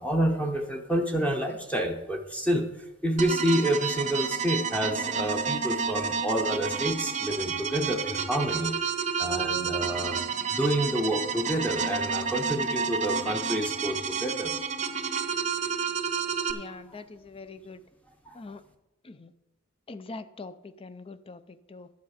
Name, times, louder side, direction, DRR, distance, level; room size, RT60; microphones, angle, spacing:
voice 1, 0.0-8.8 9.2-10.2 10.5-14.5 16.2-16.3 18.3-18.4, right 1 dB, 5° left, 2 dB, 0.8 m, -28 dB
sound 1, 3.2-16.5, right 6 dB, 35° right, 0.7 m, -30 dB
voice 2, 16.5-17.8 18.3-18.6 19.0-19.3 19.9-21.9, left 3 dB, 25° left, 13 dB, 0.5 m, -43 dB
11.5 x 7.7 x 4.9 m, 1.0 s
head